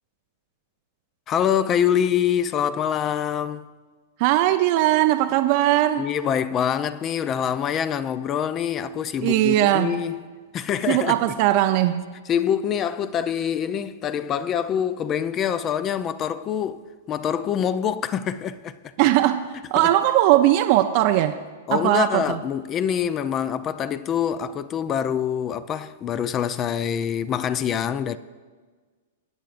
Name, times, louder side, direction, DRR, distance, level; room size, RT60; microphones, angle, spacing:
voice 1, 1.3-3.7 6.0-10.2 10.5-11.2 12.3-18.8 19.8-19.9 21.7-28.2, left 8 dB, 30° left, 0.5 m, -25 dB
voice 2, 4.2-6.1 9.2-9.9 10.9-12.2 19.0-21.4 21.7-22.4, right 14 dB, 50° right, 0.5 m, -19 dB
23.0 x 9.2 x 2.6 m
hypercardioid pair, 110°, 0 cm